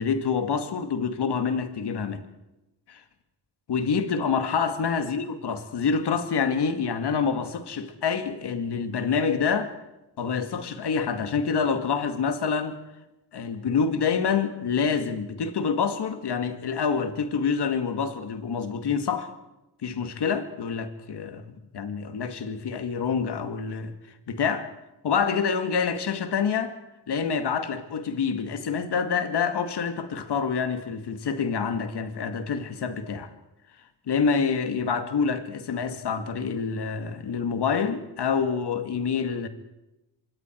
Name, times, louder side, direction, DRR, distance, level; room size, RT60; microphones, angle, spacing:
voice 1, 0.0-2.2 2.9-3.0 3.7-9.7 10.2-12.8 13.3-19.3 19.8-23.9 24.3-24.7 25.0-26.7 27.1-33.3 34.1-39.5, left 6 dB, 70° left, 2.3 m, -27 dB
25.5 x 23.5 x 4.7 m
cardioid pair, 100°, 42 cm